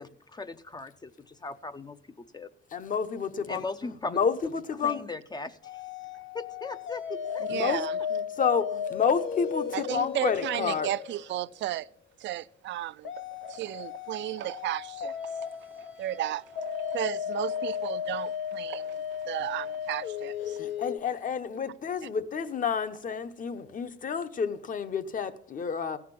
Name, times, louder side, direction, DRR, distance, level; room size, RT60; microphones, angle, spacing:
voice 1, 0.0-2.0 2.3-2.5 3.5-4.2 4.8-5.6 6.3-7.5, left 3 dB, 20° left, 0.5 m, -38 dB
voice 2, 2.7-5.0 7.5-7.8 8.1-10.9 20.5-26.0, left 6 dB, 45° left, 0.9 m, -30 dB
sound 1, 5.6-11.8 13.0-21.0, left 8 dB, 85° left, 0.8 m, -35 dB
voice 3, 7.5-7.9 9.7-11.9 12.2-13.1 13.4-15.4 16.0-20.6, right 14 dB, 75° right, 0.4 m, -34 dB
15.5 x 5.8 x 7.4 m
cardioid pair, 125°, 19 cm